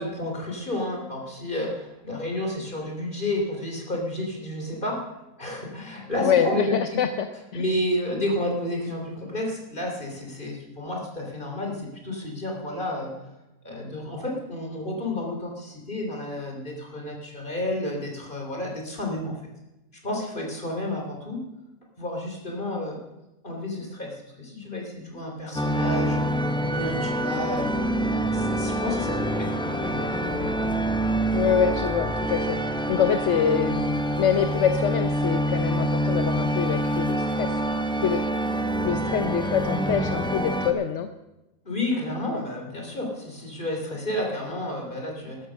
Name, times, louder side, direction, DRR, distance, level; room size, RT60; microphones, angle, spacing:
voice 1, 0.0-5.1 5.4-7.0 7.5-13.1 13.6-19.4 20.0-21.4 22.0-23.0 23.4-27.9 28.3-30.7 31.0-31.1 41.6-45.5, left 1 dB, 30° left, 1 dB, 3.5 m, -31 dB
voice 2, 6.2-7.3 7.5-7.6 31.3-37.5 38.0-38.2 38.8-41.1, left 8 dB, 55° left, 8 dB, 0.9 m, -25 dB
sound 1, 25.5-40.7, right 1 dB, 5° left, 0.6 m, -26 dB
13.0 x 12.5 x 6.3 m, 0.97 s
omnidirectional pair, 1.8 m